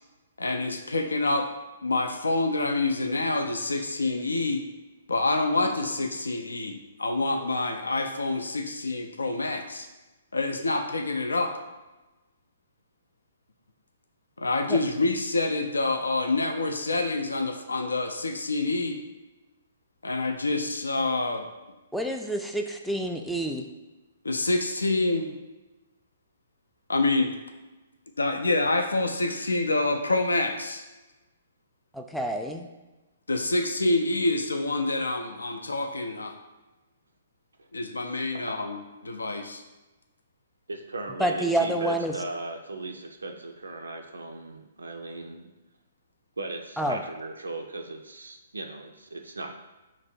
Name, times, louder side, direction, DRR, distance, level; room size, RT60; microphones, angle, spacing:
voice 1, 0.4-1.5 1.8-4.6 5.1-9.9 10.3-11.5 14.4-19.0 20.0-21.5 24.2-25.3 26.9-27.3 28.2-30.8 33.3-36.3 37.7-39.6, left 2 dB, 80° left, 5 dB, 0.4 m, -27 dB
voice 2, 21.9-23.6 31.9-32.7 41.2-42.1 46.8-47.0, right 1 dB, ahead, 2 dB, 0.3 m, -28 dB
voice 3, 40.7-45.5 46.4-49.5, right 2 dB, 80° right, 4 dB, 0.3 m, -37 dB
3.0 x 2.6 x 4.2 m, 1.1 s
figure-of-eight pair, 125°, 0 cm